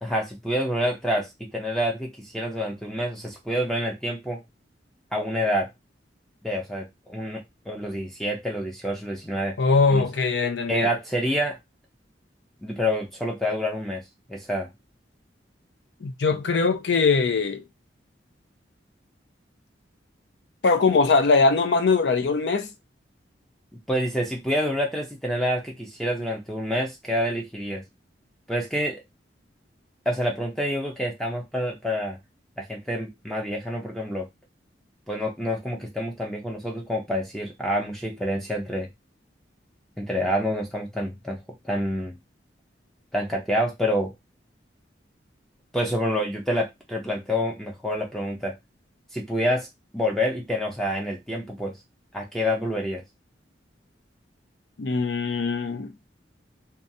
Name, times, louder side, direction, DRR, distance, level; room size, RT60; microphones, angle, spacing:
voice 1, 0.0-4.4 5.1-5.7 6.4-9.6 9.9-10.0 10.7-11.6 12.6-14.0 14.3-14.7 23.9-27.8 28.5-29.0 30.1-32.2 32.6-34.3 35.1-38.9 40.0-41.4 41.6-42.2 43.1-44.1 45.7-48.5 49.1-49.7 49.9-51.7 52.1-53.0, equal, ahead, 0.4 m, -27 dB
voice 2, 9.6-10.9 16.0-17.6 20.6-22.7 54.8-55.9, left 4 dB, 75° left, 0.5 m, -21 dB
2.7 x 2.3 x 2.6 m
head